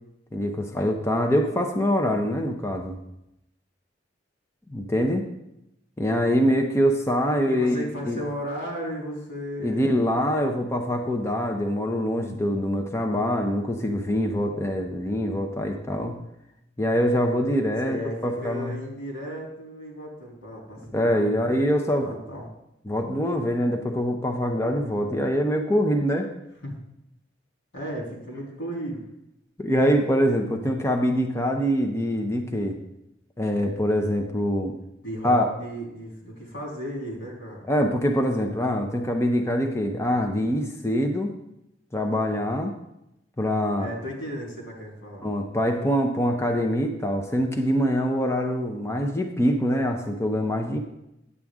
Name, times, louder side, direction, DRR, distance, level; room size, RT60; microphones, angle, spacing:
voice 1, 0.3-3.0 4.7-5.2 6.0-7.7 8.0-8.2 9.6-16.2 16.8-18.7 20.9-22.1 22.9-26.3 29.6-32.8 33.4-34.7 35.2-35.4 37.7-41.3 41.9-42.7 43.4-43.9 45.2-50.8, equal, 15° left, 3 dB, 0.7 m, -24 dB
voice 2, 7.5-10.0 17.8-22.5 26.6-26.8 27.7-29.0 35.0-37.7 43.8-45.3, equal, 85° left, -2 dB, 3.0 m, -35 dB
9.8 x 7.6 x 3.6 m, 0.85 s
head